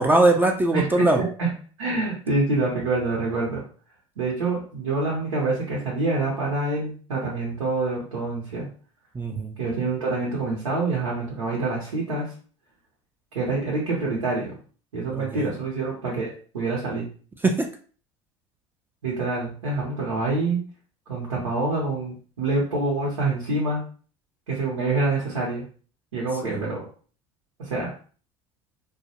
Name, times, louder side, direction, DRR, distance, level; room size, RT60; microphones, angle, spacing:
voice 1, 0.0-1.2 9.1-9.5 15.1-15.5 17.4-17.7 26.4-26.6, right 2 dB, 15° right, 3 dB, 0.4 m, -21 dB
voice 2, 0.7-1.5 1.8-3.6 4.2-8.7 9.6-12.3 13.3-14.5 14.9-17.1 19.0-20.6 21.1-23.8 24.5-25.6 26.1-26.8 27.6-27.9, right 3 dB, 90° right, -4 dB, 0.8 m, -26 dB
2.3 x 2.0 x 2.8 m, 0.42 s
hypercardioid pair, 80°, 16 cm